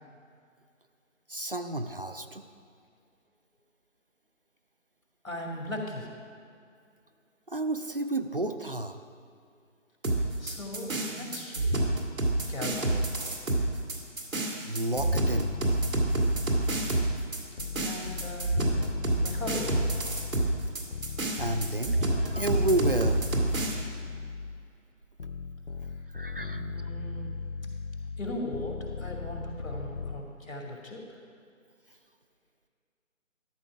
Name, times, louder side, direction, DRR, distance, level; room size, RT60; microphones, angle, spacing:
voice 1, 1.3-2.4 7.5-9.0 14.7-15.5 21.4-23.2 26.1-26.6, right 2 dB, 45° right, 8 dB, 0.4 m, -31 dB
voice 2, 5.2-6.1 10.4-12.0 12.5-13.0 17.8-18.8 19.2-19.9 26.3-27.5 28.2-31.2, left 1 dB, 85° left, 0 dB, 2.4 m, -38 dB
sound 1, 10.0-23.8, right 2 dB, 85° right, 2.0 m, -28 dB
sound 2, 15.0-17.1 17.6-24.7 25.2-30.2, left 4 dB, 55° left, 0.5 m, -37 dB
12.5 x 7.0 x 4.7 m, 2.4 s
figure-of-eight pair, 170°, 39 cm